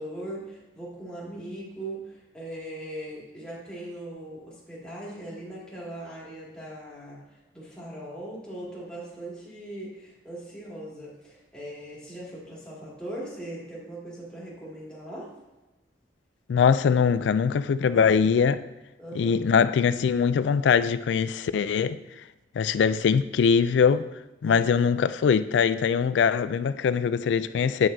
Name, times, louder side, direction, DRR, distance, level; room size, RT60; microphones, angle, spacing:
voice 1, 0.0-7.2 7.5-15.3 17.9-18.2 19.0-19.5 24.5-24.6, right 1 dB, 5° left, 2.3 m, -39 dB
voice 2, 16.5-18.6 19.2-22.0 22.6-24.1 24.4-27.9, left 6 dB, 85° left, 0.3 m, -22 dB
9.1 x 5.8 x 2.7 m
head